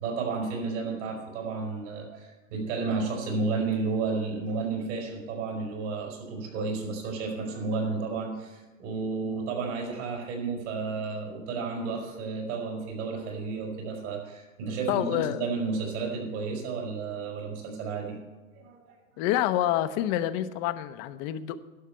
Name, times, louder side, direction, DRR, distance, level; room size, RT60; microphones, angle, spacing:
voice 1, 0.0-18.2 18.5-19.0, right 4 dB, 55° right, 1 dB, 4.6 m, -32 dB
voice 2, 14.9-15.5 19.2-21.6, left 12 dB, 35° left, 12 dB, 0.7 m, -28 dB
11.5 x 6.5 x 8.3 m, 1.2 s
hypercardioid pair, 120°, 41 cm